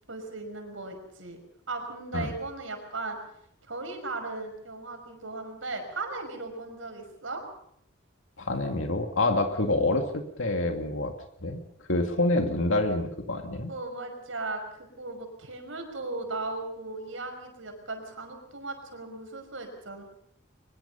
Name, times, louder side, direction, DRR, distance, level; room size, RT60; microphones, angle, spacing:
voice 1, 0.1-1.4 1.7-3.2 3.7-7.4 13.7-20.0, right 3 dB, 85° right, 5 dB, 5.6 m, -37 dB
voice 2, 8.4-11.1 11.4-11.6 11.9-13.7, left 2 dB, 90° left, 5 dB, 2.3 m, -27 dB
23.0 x 22.0 x 5.7 m, 0.72 s
head